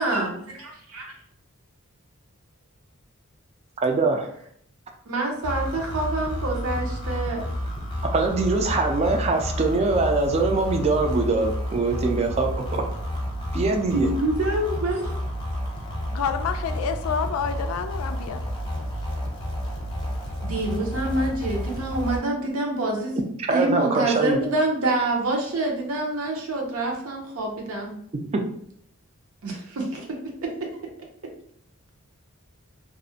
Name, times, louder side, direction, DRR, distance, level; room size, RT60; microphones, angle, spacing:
voice 1, 0.0-1.1 5.1-7.4 13.9-15.2 20.4-23.1 23.5-28.0 29.4-30.1 30.4-30.5, right 2 dB, 80° right, 0 dB, 0.7 m, -26 dB
voice 2, 3.8-4.3 8.1-12.8 13.5-14.1 23.5-24.4 28.3-28.4, right 3 dB, 30° right, 3 dB, 0.3 m, -23 dB
sound 1, 5.4-22.2, equal, 25° left, 0.7 m, -30 dB
voice 3, 16.1-18.4, left 6 dB, 80° left, 8 dB, 0.3 m, -28 dB
2.4 x 2.1 x 2.7 m, 0.65 s
head